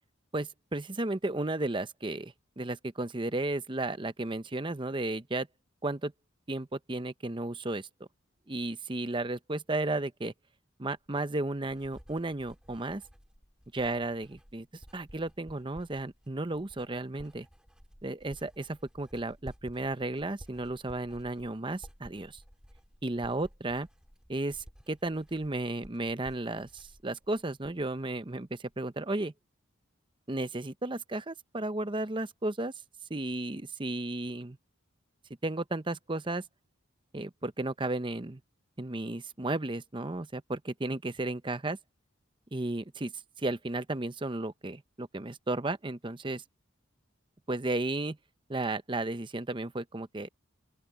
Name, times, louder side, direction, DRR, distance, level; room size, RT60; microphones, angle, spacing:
voice 1, 0.3-5.5 5.8-6.1 6.5-8.1 8.5-10.3 10.8-13.0 13.7-17.5 18.0-22.4 23.0-23.9 24.3-29.3 30.3-32.7 33.1-34.6 35.4-36.4 37.1-38.4 38.8-41.8 42.5-43.1 43.4-46.4 47.5-48.2 48.5-50.3, right 2 dB, 25° right, 0.8 m, -34 dB
Writing, 11.0-28.0 28.3-28.8, equal, 5° right, 3.8 m, -54 dB
open air
head